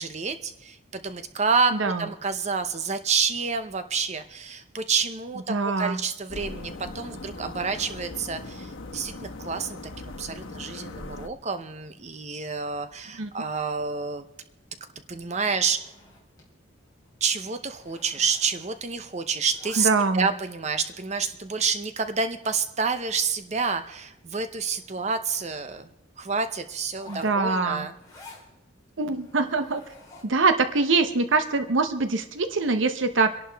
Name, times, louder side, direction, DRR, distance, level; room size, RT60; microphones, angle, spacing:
voice 1, 0.0-14.2 15.1-15.9 17.2-19.9 20.1-25.9 26.2-27.9, right 5 dB, 35° right, 9 dB, 0.6 m, -28 dB
voice 2, 1.7-2.0 5.5-6.0 13.2-13.3 19.8-20.3 27.1-27.9 29.0-29.8 30.2-33.3, right 3 dB, 70° right, 9 dB, 0.8 m, -23 dB
sound 1, 6.3-11.3, left 2 dB, 90° left, 1.1 m, -39 dB
Zipper (clothing), 15.5-16.5 16.8-17.1 17.3-19.0 19.3-20.3 20.9-21.0 21.6-21.7 22.1-22.2 22.4-22.5 22.8-22.9 23.5-23.8 24.3-24.4 24.6-25.9 26.9-28.5 29.1-30.5, left 2 dB, 20° left, 3.4 m, -50 dB
26.5 x 11.5 x 3.4 m, 0.87 s
head